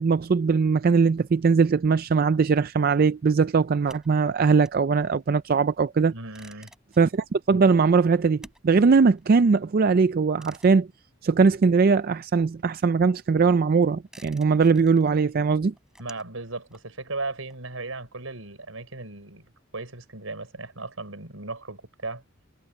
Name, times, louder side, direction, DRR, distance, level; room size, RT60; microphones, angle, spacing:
voice 1, 0.0-6.1 7.0-10.9 11.2-15.7, right 5 dB, 45° right, 0.4 m, -20 dB
sound 1, 3.9-12.0 12.3-18.1, right 1 dB, 5° right, 5.2 m, -54 dB
voice 2, 6.1-6.7 16.0-22.2, right 3 dB, 85° right, 4.6 m, -36 dB
head